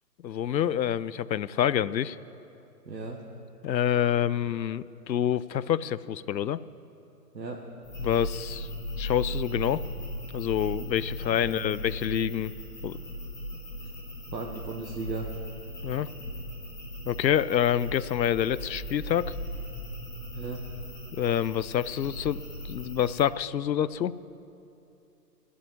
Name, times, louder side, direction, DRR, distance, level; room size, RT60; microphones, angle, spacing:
voice 1, 0.2-2.2 3.6-6.6 8.0-8.7 9.0-9.8 10.3-12.5 12.8-13.0 15.8-16.1 17.1-19.3 21.1-22.4 22.7-24.2, left 10 dB, 85° left, 18 dB, 0.6 m, -27 dB
voice 2, 2.8-3.2 7.3-7.6 11.3-11.7 14.3-15.4 20.3-20.6, right 3 dB, 80° right, 1 dB, 1.4 m, -36 dB
sound 1, 7.8-23.2, equal, 5° left, 1.2 m, -38 dB
12.0 x 8.3 x 9.4 m, 2.7 s
figure-of-eight pair, 150°, 50 cm